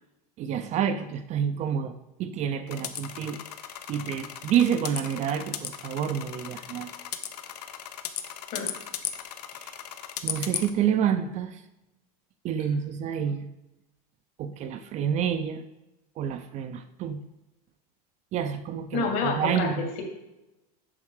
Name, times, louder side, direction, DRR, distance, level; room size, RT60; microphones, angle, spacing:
voice 1, 0.4-3.4 3.9-6.9 9.6-9.8 10.2-11.6 12.4-13.4 14.4-15.6 16.2-17.2 18.3-19.8, right 8 dB, 35° right, 9 dB, 0.5 m, -28 dB
sound 1, 2.7-10.7, left 11 dB, 90° left, 0.7 m, -36 dB
voice 2, 18.9-20.0, left 4 dB, 50° left, 2 dB, 2.1 m, -28 dB
7.2 x 5.5 x 4.7 m, 0.94 s
supercardioid pair, 130°, 20 cm